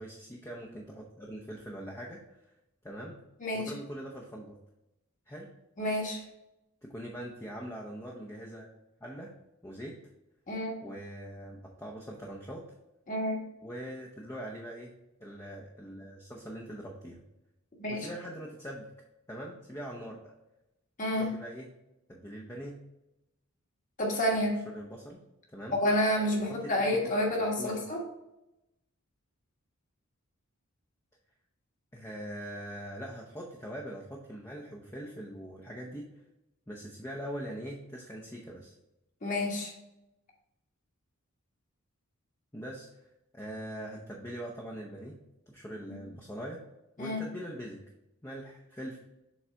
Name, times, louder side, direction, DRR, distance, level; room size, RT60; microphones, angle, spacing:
voice 1, 0.0-2.2 2.8-3.2 3.5-4.6 5.3-5.5 6.8-8.7 9.0-9.3 9.6-10.0 10.8-12.7 13.6-14.9 15.2-17.2 17.9-18.9 19.3-20.3 21.1-21.7 22.1-22.8 24.7-25.2 25.5-25.8 26.5-27.1 27.6-27.8 31.9-36.1 36.7-38.7 42.5-42.9 43.3-45.2 45.5-46.6 47.0-47.8 48.2-49.0, equal, 15° left, -2 dB, 0.7 m, -42 dB
voice 2, 3.4-3.7 5.8-6.2 10.5-10.7 13.1-13.4 17.8-18.1 21.0-21.3 24.0-24.6 25.8-28.0 39.2-39.7 45.9-46.0 47.0-47.2, left 1 dB, 35° left, -1 dB, 1.6 m, -29 dB
7.2 x 3.9 x 3.4 m, 0.91 s
head